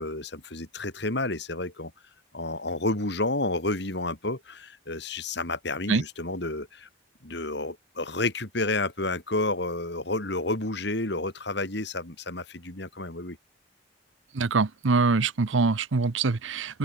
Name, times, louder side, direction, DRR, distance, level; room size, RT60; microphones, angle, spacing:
voice 1, 0.0-1.9 2.3-6.9 7.2-13.4, left 2 dB, 60° left, 3.2 m, -30 dB
voice 2, 14.3-16.8, right 4 dB, 80° right, 0.8 m, -24 dB
open air
head